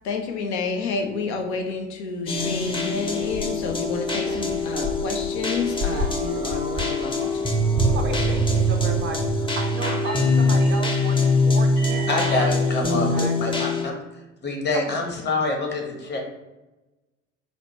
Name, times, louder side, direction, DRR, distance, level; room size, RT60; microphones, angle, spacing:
voice 1, 0.0-7.6, left 4 dB, 65° left, 4 dB, 0.6 m, -30 dB
sound 1, 2.3-13.8, left 2 dB, 15° left, 0.6 m, -23 dB
sound 2, 2.4-9.5, right 1 dB, 80° right, 0.8 m, -30 dB
sound 3, 4.8-5.3 5.8-8.9 10.0-12.5, right 2 dB, 90° left, 1.1 m, -40 dB
voice 2, 7.9-13.4 14.7-15.0, right 4 dB, 35° right, 4 dB, 0.5 m, -35 dB
voice 3, 12.1-13.9 14.4-16.2, left 2 dB, 30° left, 1 dB, 1.0 m, -26 dB
4.9 x 2.1 x 2.9 m, 1.0 s
figure-of-eight pair, 60°, 35 cm